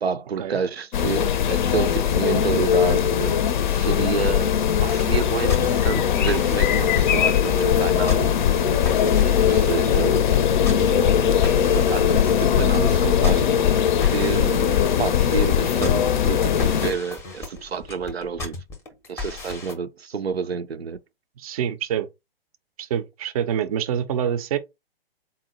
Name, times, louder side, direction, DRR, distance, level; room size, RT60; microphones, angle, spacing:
voice 1, 0.0-8.4 9.3-10.3 10.8-13.6 14.0-18.6 19.1-21.0, right 6 dB, 85° right, 0.5 m, -29 dB
sound 1, 0.9-16.9, left 9 dB, 50° left, 0.5 m, -20 dB
sound 2, 5.0-19.7, left 3 dB, 10° left, 0.6 m, -36 dB
voice 2, 21.4-22.1 22.8-24.6, right 9 dB, 40° right, 0.5 m, -26 dB
3.9 x 2.2 x 3.8 m
figure-of-eight pair, 125°, 30 cm